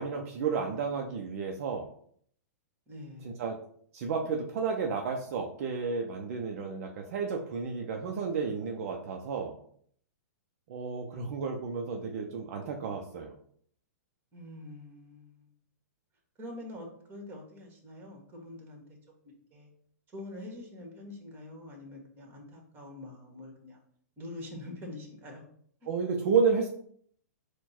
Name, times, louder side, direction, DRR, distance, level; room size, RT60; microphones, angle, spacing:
voice 1, 0.0-1.9 3.2-3.6 3.9-9.6 10.7-13.3 25.9-26.7, right 5 dB, 55° right, 2 dB, 0.6 m, -31 dB
voice 2, 2.9-3.4 14.3-15.5 16.4-19.0 19.2-19.7 20.1-23.8 24.2-25.4, left 1 dB, 20° right, 0 dB, 1.6 m, -45 dB
4.3 x 2.2 x 4.3 m, 0.62 s
hypercardioid pair, 130°, 9 cm